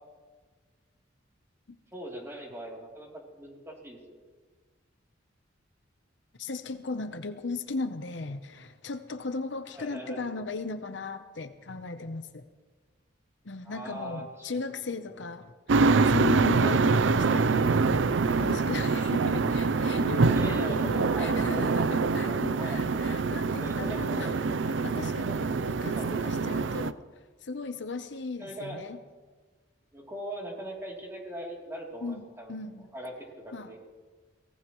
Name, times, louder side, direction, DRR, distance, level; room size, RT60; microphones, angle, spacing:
voice 1, 1.9-4.2 9.7-10.3 13.6-14.6 14.9-15.0 16.6-16.8 20.3-21.6 22.1-22.8 23.6-24.5 25.1-26.2 28.4-28.8 29.9-32.5 32.9-33.8, equal, 15° right, -2 dB, 3.1 m, -40 dB
voice 2, 6.4-12.4 13.4-15.8 16.0-17.8 18.4-24.3 24.7-27.0 27.4-29.0 32.0-32.9 33.5-33.7, left 3 dB, 65° left, 9 dB, 0.8 m, -37 dB
sound 1, 15.7-26.9, right 4 dB, 75° right, 0.5 m, -25 dB
23.5 x 18.0 x 3.1 m, 1.4 s
head